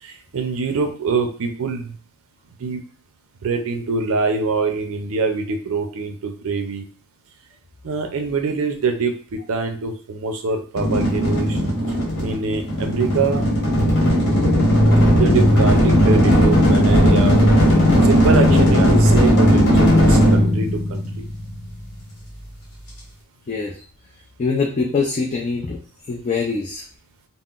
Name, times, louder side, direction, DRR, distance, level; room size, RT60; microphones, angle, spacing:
voice 1, 0.0-1.9 2.6-2.8 3.4-6.9 7.8-11.6 12.2-13.5 13.8-14.2 15.1-17.4 17.9-21.3, right 4 dB, 65° right, 5 dB, 0.5 m, -24 dB
sound 1, 10.8-21.7, equal, 55° left, 1.3 m, -16 dB
voice 2, 24.4-25.8 26.1-26.8, left 4 dB, 35° left, -2 dB, 0.4 m, -23 dB
3.7 x 2.0 x 2.4 m, 0.41 s
head